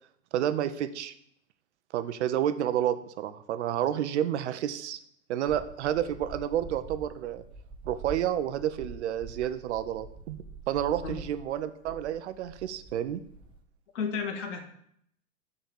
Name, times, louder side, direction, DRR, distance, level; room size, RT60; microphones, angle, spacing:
voice 1, 0.3-1.1 1.9-5.0 5.3-7.4 7.8-13.2, right 10 dB, 55° right, 12 dB, 0.7 m, -30 dB
sound 1, 5.5-13.6, right 3 dB, 10° right, 0.7 m, -46 dB
voice 2, 13.9-14.6, left 5 dB, 55° left, 4 dB, 1.9 m, -32 dB
8.8 x 4.1 x 7.1 m, 0.69 s
figure-of-eight pair, 105°, 42 cm